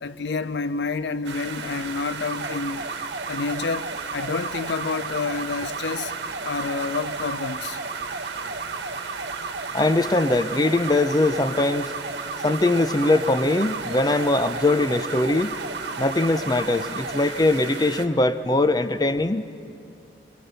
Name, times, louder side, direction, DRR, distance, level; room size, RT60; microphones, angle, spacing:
voice 1, 0.0-2.9 3.3-6.1 6.4-7.8, left 4 dB, 70° left, 0.5 m, -29 dB
sound 1, 1.2-18.1, right 5 dB, 65° right, 1.5 m, -36 dB
sound 2, 2.2-17.2, right 3 dB, 45° right, 0.9 m, -35 dB
voice 2, 9.7-11.8 12.4-15.5 16.0-19.4, left 2 dB, 20° left, 0.5 m, -21 dB
25.0 x 21.5 x 6.8 m
head